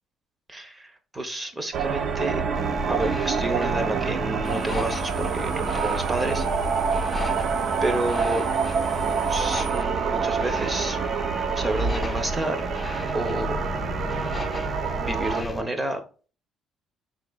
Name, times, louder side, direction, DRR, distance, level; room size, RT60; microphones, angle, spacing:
voice 1, 0.5-2.4 2.9-6.5 7.8-8.5 9.3-11.0 11.6-12.7 13.1-13.6 15.0-16.0, right 1 dB, 15° right, 0.7 m, -30 dB
sound 1, 1.7-15.4, right 5 dB, 55° right, 0.4 m, -26 dB
sound 2, 2.5-15.6, left 3 dB, 15° left, 0.4 m, -37 dB
sound 3, 4.4-9.8, left 2 dB, 80° right, 2.1 m, -41 dB
4.7 x 3.7 x 2.2 m
cardioid pair, 140°, 0 cm